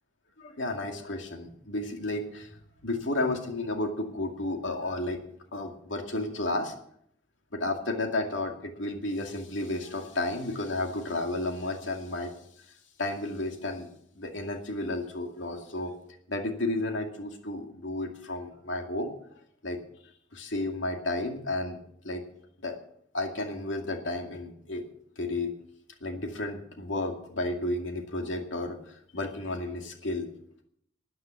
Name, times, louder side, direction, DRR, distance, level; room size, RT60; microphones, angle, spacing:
voice 1, 0.4-2.6 2.8-5.2 5.5-6.7 7.5-12.3 13.0-13.9 14.2-16.0 16.3-19.1 19.6-19.8 20.3-21.8 22.0-22.2 22.6-22.8 23.1-24.8 25.2-25.5 26.0-30.3, left 2 dB, 80° left, 3 dB, 2.3 m, -32 dB
13.0 x 9.4 x 7.1 m, 0.69 s
head